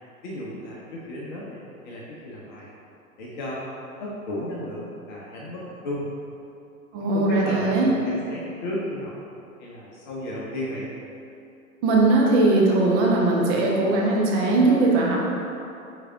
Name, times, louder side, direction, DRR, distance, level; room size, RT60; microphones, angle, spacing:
voice 1, 0.2-2.7 3.2-6.1 7.0-9.1 9.6-10.9, left 1 dB, 35° left, -5 dB, 0.7 m, -33 dB
voice 2, 6.9-7.9 11.8-15.2, right 2 dB, 20° right, -2 dB, 0.4 m, -20 dB
4.8 x 3.3 x 3.3 m, 2.7 s
figure-of-eight pair, 100°, 42 cm